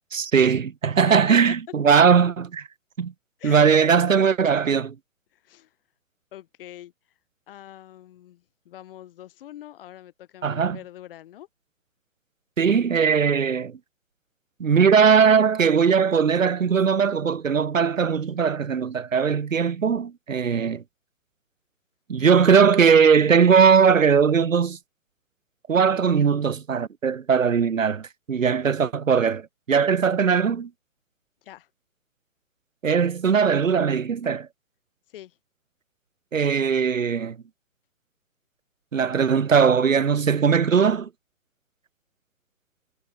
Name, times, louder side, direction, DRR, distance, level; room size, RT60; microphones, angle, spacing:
voice 1, 0.1-2.6 3.0-3.1 3.4-4.9 10.4-10.8 12.6-13.8 14.6-20.8 22.1-24.8 25.7-30.7 32.8-34.5 36.3-37.4 38.9-41.1, right 6 dB, 75° right, 1.5 m, -19 dB
voice 2, 1.0-1.4 3.4-3.7 5.3-5.7 6.3-6.9 7.5-11.5 31.4-31.7 35.1-35.4, left 13 dB, 45° left, 4.8 m, -43 dB
figure-of-eight pair, 135°, 40 cm